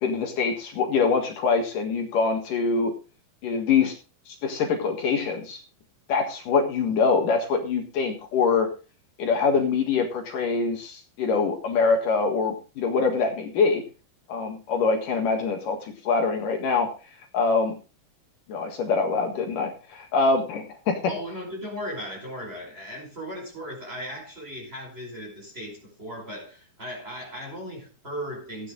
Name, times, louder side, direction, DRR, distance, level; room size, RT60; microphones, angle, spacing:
voice 1, 0.0-2.9 3.4-3.9 4.3-5.6 6.1-8.7 9.2-13.8 14.3-16.9 17.3-17.7 18.5-21.0, left 4 dB, 65° left, 3.2 m, -24 dB
voice 2, 21.1-28.7, equal, 15° right, 5.3 m, -37 dB
15.0 x 9.4 x 3.9 m
omnidirectional pair, 4.2 m